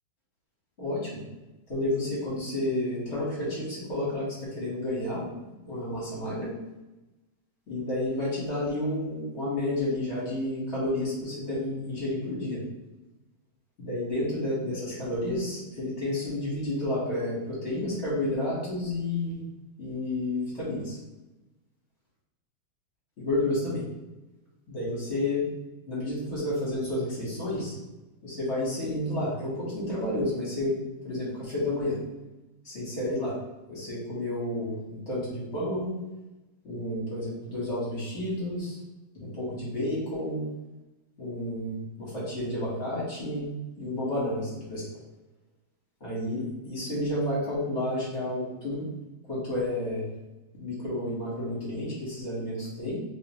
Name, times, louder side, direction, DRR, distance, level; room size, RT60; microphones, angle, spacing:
voice 1, 0.8-1.2 1.7-5.3 5.6-6.5 7.7-12.6 13.8-19.4 19.8-21.0 23.2-23.8 24.7-25.4 25.9-27.7 28.2-30.8 31.0-32.0 32.6-33.4 33.7-36.0 36.6-38.8 39.1-40.5 41.2-43.5 43.8-44.9 46.0-48.9 49.3-50.0 50.6-53.0, left 1 dB, 35° left, -8 dB, 1.3 m, -31 dB
3.3 x 2.8 x 3.0 m, 1.0 s
omnidirectional pair, 2.4 m